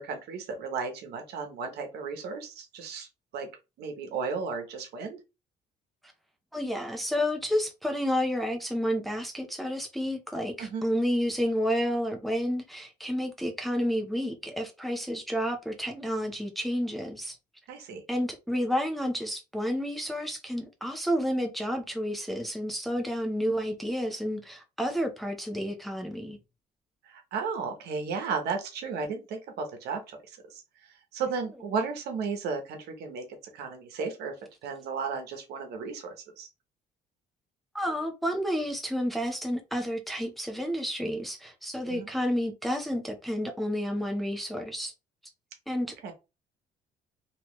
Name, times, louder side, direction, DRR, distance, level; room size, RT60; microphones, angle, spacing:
voice 1, 0.0-3.1 3.3-3.5 3.8-5.2 10.6-10.9 17.7-18.0 27.0-30.2 30.5-30.6 31.1-33.2 33.5-34.3 34.6-36.5 41.9-42.1 46.0-46.1, right 5 dB, 75° right, 1.1 m, -34 dB
voice 2, 6.5-17.4 18.1-26.4 37.7-44.9 45.7-45.9, equal, ahead, 0.8 m, -30 dB
3.1 x 3.0 x 3.1 m
cardioid pair, 110°, 17 cm